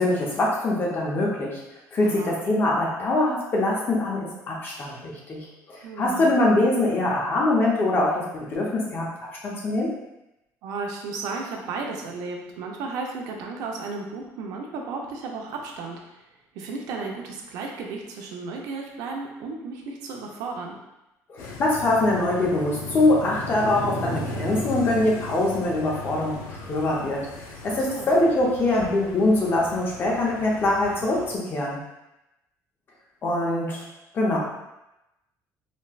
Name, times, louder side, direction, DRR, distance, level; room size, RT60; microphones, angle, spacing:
voice 1, 0.0-1.6 1.9-9.9 21.3-31.8 33.2-33.9 34.1-34.4, left 2 dB, 35° left, -3 dB, 0.7 m, -23 dB
voice 2, 2.0-2.3 5.8-6.3 10.6-16.2 16.5-20.8 27.7-28.1, right 4 dB, 80° right, 1 dB, 0.5 m, -34 dB
sound 1, 21.4-31.4, left 2 dB, 90° left, 0.4 m, -36 dB
4.2 x 2.1 x 2.3 m, 0.92 s
cardioid pair, 150°, 6 cm